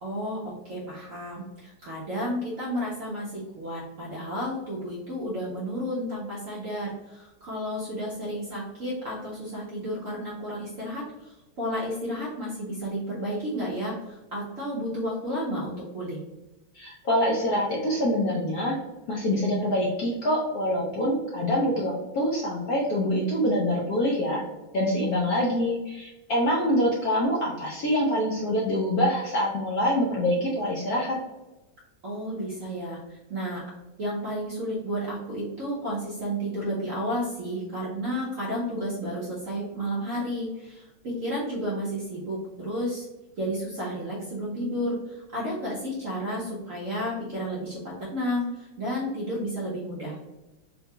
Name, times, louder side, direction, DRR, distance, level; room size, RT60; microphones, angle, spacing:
voice 1, 0.0-16.2 32.0-33.6 34.0-43.1 43.4-50.2, equal, 65° right, -6 dB, 0.8 m, -32 dB
voice 2, 16.7-18.8 19.1-24.4 24.7-31.2, equal, 70° left, -4 dB, 0.9 m, -25 dB
3.9 x 2.2 x 2.8 m, 1.1 s
omnidirectional pair, 2.2 m